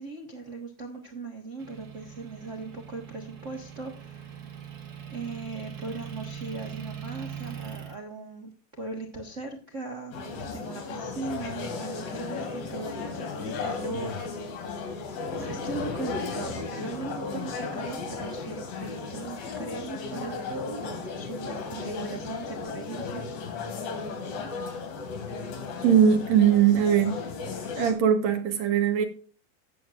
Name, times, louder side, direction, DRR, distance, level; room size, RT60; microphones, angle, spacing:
voice 1, 0.0-4.5 5.1-10.2 10.5-14.3 15.4-23.6, right 3 dB, 90° right, 0.6 m, -39 dB
Motor vehicle (road) / Engine, 1.6-8.0, right 9 dB, 45° right, 1.3 m, -41 dB
sound 1, 10.1-27.9, left 4 dB, 90° left, 3.9 m, -35 dB
voice 2, 25.8-27.2 27.7-29.0, right 8 dB, 65° right, 2.0 m, -20 dB
16.5 x 7.2 x 2.5 m
omnidirectional pair, 4.0 m